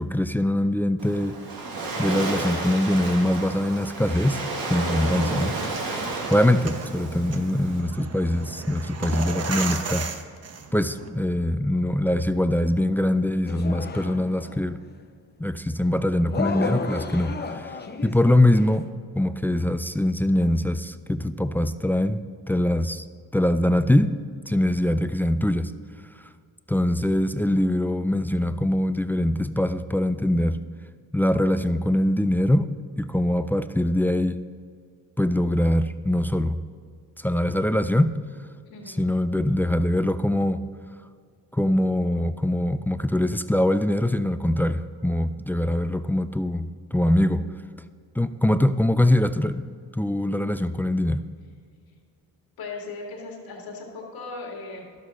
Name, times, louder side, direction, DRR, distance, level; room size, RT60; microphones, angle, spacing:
voice 1, 0.0-1.4 2.0-5.5 6.3-10.1 10.7-14.8 15.4-17.7 18.0-18.9 19.1-23.0 23.3-24.2 24.5-25.7 26.7-30.6 31.1-32.7 33.0-34.4 35.2-36.6 37.2-38.2 38.9-40.6 41.5-47.4 48.2-49.7 49.9-51.3, left 1 dB, 5° left, 11 dB, 0.3 m, -23 dB
Waves surf, 1.0-7.8, right 2 dB, 75° right, 1.6 m, -32 dB
sound 1, 4.9-11.1, right 5 dB, 45° right, 0.9 m, -35 dB
sound 2, 13.5-14.7 16.3-18.9, left 4 dB, 30° left, 0.8 m, -32 dB
voice 2, 38.6-39.0 52.6-54.9, left 3 dB, 80° left, -1 dB, 2.0 m, -37 dB
12.0 x 7.3 x 3.9 m, 2.1 s
cardioid pair, 75°, 35 cm